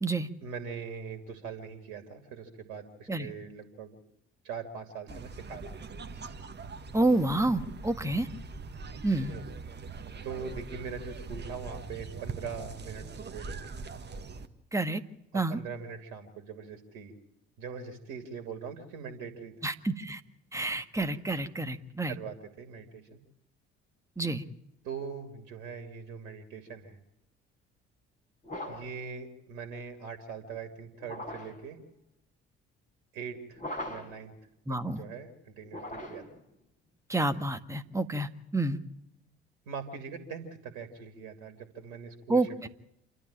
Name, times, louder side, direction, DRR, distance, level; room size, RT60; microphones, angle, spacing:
voice 1, 0.4-3.9 4.4-5.7 9.3-9.4 10.2-13.6 15.3-17.1 17.6-19.7 22.1-23.2 24.8-27.0 28.7-31.8 33.1-33.6 33.9-34.3 34.7-36.2 39.7-42.7, right 6 dB, 65° right, 7 dB, 2.7 m, -42 dB
sound 1, 5.1-14.5, right 4 dB, 30° right, 1.8 m, -42 dB
voice 2, 6.9-8.3 9.0-9.3 14.7-15.0 15.3-15.6 19.6-20.2 20.5-22.2 24.2-24.4 34.7-35.0 37.1-38.8 42.3-42.7, right 2 dB, 10° right, 9 dB, 1.7 m, -29 dB
sound 2, 28.4-29.0 31.0-31.6 33.5-34.2 35.6-36.4, left 1 dB, 20° left, 6.2 m, -40 dB
28.0 x 12.5 x 8.9 m, 0.80 s
figure-of-eight pair, 50°, 34 cm